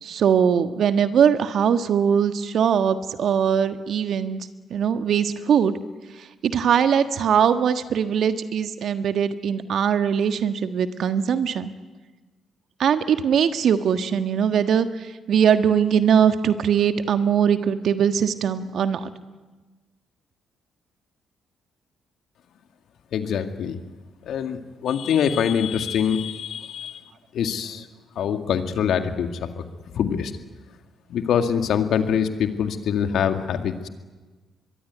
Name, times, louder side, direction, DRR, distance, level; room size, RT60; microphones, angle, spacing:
voice 1, 0.0-5.8 6.4-11.7 12.8-19.1, right 8 dB, 60° right, 9 dB, 1.5 m, -21 dB
voice 2, 23.1-23.8 24.3-27.0 27.3-27.8 28.2-29.6 29.9-30.3 31.1-33.9, left 8 dB, 65° left, 7 dB, 2.1 m, -24 dB
24.5 x 23.0 x 9.5 m, 1.3 s
hypercardioid pair, 45°, 0 cm